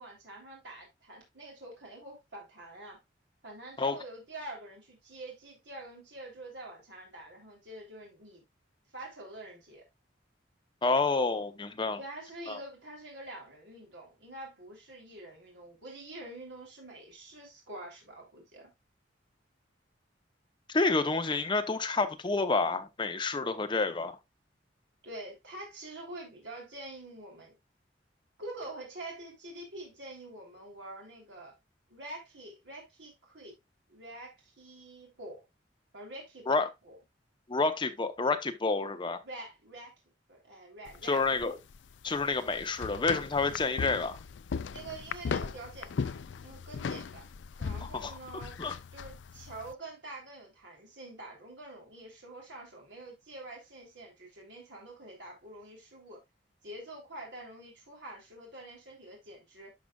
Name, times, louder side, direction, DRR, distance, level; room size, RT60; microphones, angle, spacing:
voice 1, 0.0-3.0 3.4-8.4 8.9-9.8 12.0-18.7 25.0-27.5 28.4-31.5 31.9-33.6 33.9-35.4 35.9-37.0 39.2-39.9 40.3-41.6 44.7-46.1 46.4-47.2 47.6-48.6 48.9-56.2 56.6-59.7, right 1 dB, 75° right, 3.3 m, -46 dB
voice 2, 10.8-12.0 12.5-12.6 20.7-24.1 36.5-36.7 37.5-39.2 41.0-41.5 42.0-44.2 47.8-48.1 48.6-48.7, left 3 dB, 25° left, 0.8 m, -29 dB
sound 1, 40.9-49.7, left 5 dB, 85° left, 0.4 m, -38 dB
11.5 x 5.1 x 2.3 m
head